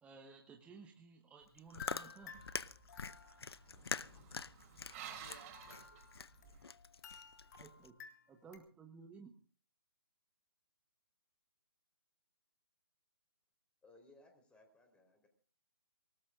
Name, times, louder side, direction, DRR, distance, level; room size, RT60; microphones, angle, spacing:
voice 1, 0.0-2.3 7.6-7.9 8.3-9.3, right 5 dB, 10° right, 2 dB, 1.2 m, -56 dB
Chewing mastication, 1.4-7.9, left 5 dB, 75° left, 0.8 m, -45 dB
sound 1, 1.8-3.7 5.5-8.6, left 6 dB, 45° left, 3.3 m, -55 dB
sound 2, 2.3-6.7, right 8 dB, 30° right, 4.8 m, -54 dB
voice 2, 4.1-7.6, right 2 dB, 80° right, 3 dB, 4.7 m, -67 dB
voice 3, 13.8-15.3, left 2 dB, 10° left, 5 dB, 3.9 m, -64 dB
27.0 x 19.0 x 2.5 m, 0.41 s
figure-of-eight pair, 140°, 13 cm